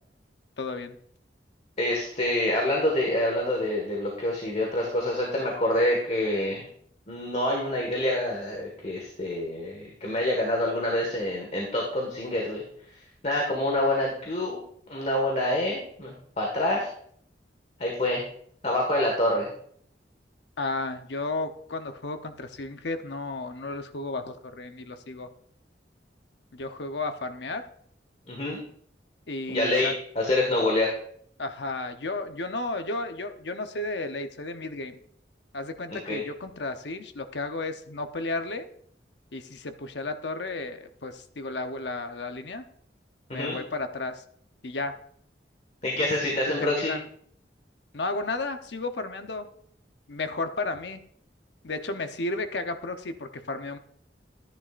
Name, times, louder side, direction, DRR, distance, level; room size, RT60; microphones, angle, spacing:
voice 1, 0.6-1.0 20.6-25.3 26.5-27.6 29.3-29.9 31.4-35.0 35.5-38.7 39.3-42.6 43.3-44.2 44.6-44.9 46.6-47.0 47.9-49.5 50.1-51.0 51.6-53.8, left 2 dB, 75° left, 7 dB, 0.9 m, -33 dB
voice 2, 1.8-6.6 7.1-12.6 13.2-14.6 14.9-16.9 17.8-18.2 18.6-19.5 28.3-28.6 29.5-29.9 30.1-30.9 36.0-36.2 43.3-43.6 45.8-46.9, left 1 dB, 40° left, -1 dB, 1.7 m, -26 dB
14.0 x 10.5 x 2.5 m, 0.64 s
head